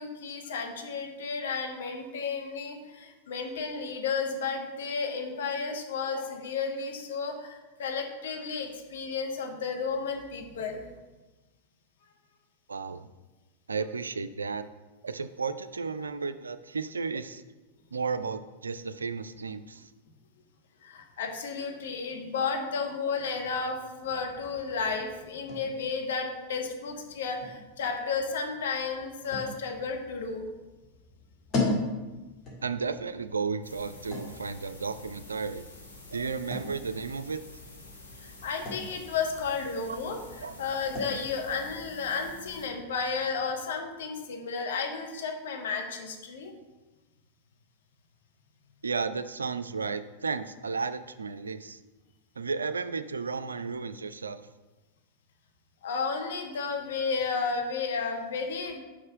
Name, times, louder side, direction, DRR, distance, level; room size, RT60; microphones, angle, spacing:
voice 1, 0.0-10.8 20.8-30.5 38.2-40.2 40.6-46.5 55.8-58.8, left 5 dB, 60° left, 3 dB, 1.0 m, -33 dB
voice 2, 12.7-13.1 13.7-14.7 15.0-17.4 17.9-19.9 32.6-35.6 36.1-37.4 39.9-40.0 40.4-40.7 48.8-51.8 52.4-54.4, right 4 dB, 75° right, 12 dB, 0.3 m, -33 dB
sound 1, 24.0-43.6, left 2 dB, 30° left, 1.8 m, -40 dB
sound 2, 33.6-42.7, left 2 dB, 75° left, 1.4 m, -49 dB
5.4 x 4.9 x 4.8 m, 1.2 s
figure-of-eight pair, 90°, 0 cm